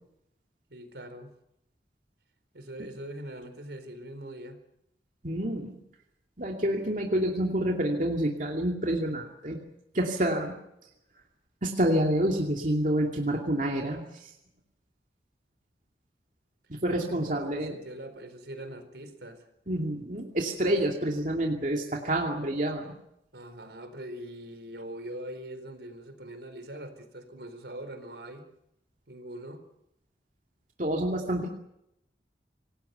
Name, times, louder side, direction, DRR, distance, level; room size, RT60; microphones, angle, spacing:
voice 1, 0.7-1.3 2.5-4.6 17.1-19.4 20.6-20.8 23.3-28.5 29.1-29.6, right 1 dB, 75° right, 9 dB, 4.3 m, -42 dB
voice 2, 5.2-5.8 6.4-9.6 9.9-10.5 11.6-14.3 16.7-17.8 19.7-22.9 30.8-31.5, right 1 dB, 45° right, 1 dB, 2.6 m, -28 dB
27.0 x 19.0 x 6.9 m, 0.80 s
head